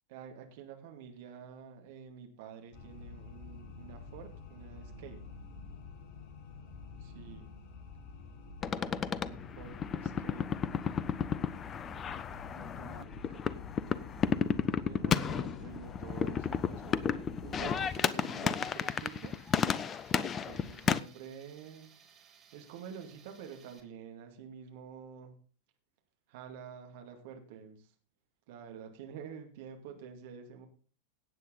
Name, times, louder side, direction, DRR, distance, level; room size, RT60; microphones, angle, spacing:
voice 1, 0.1-5.2 7.0-7.5 8.6-10.4 12.5-13.5 14.8-19.3 20.4-25.3 26.3-27.9 28.5-30.7, right 7 dB, 50° right, 4 dB, 2.5 m, -49 dB
sound 1, 2.7-17.9, left 5 dB, 45° left, 1.6 m, -48 dB
sound 2, 8.6-21.0, left 7 dB, 25° left, 0.6 m, -33 dB
Tools, 17.6-23.8, right 7 dB, 25° right, 2.5 m, -61 dB
17.5 x 8.3 x 3.9 m, 0.41 s
figure-of-eight pair, 90°, 0 cm